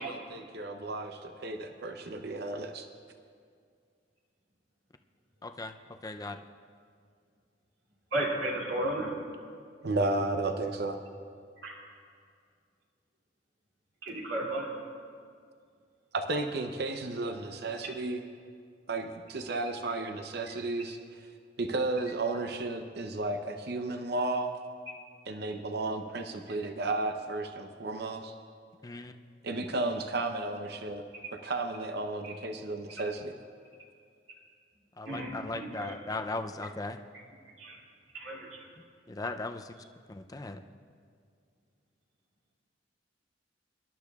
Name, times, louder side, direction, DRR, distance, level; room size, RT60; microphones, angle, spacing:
voice 1, 0.0-2.9 9.8-11.0 16.1-18.2 18.9-21.3 21.6-24.6 25.3-28.3 29.4-31.0 31.4-33.3, right 2 dB, 60° right, 5 dB, 0.7 m, -33 dB
voice 2, 5.4-5.8 6.0-6.4 28.8-29.1 35.0-37.0 39.1-39.7 40.1-40.6, left 2 dB, 20° left, 7 dB, 0.5 m, -37 dB
voice 3, 8.1-9.1 11.6-11.7 14.0-14.7 32.2-32.3 35.1-36.0 37.6-37.8 38.1-38.6, right 1 dB, 80° right, -4 dB, 2.7 m, -34 dB
25.0 x 12.0 x 2.4 m, 2.2 s
head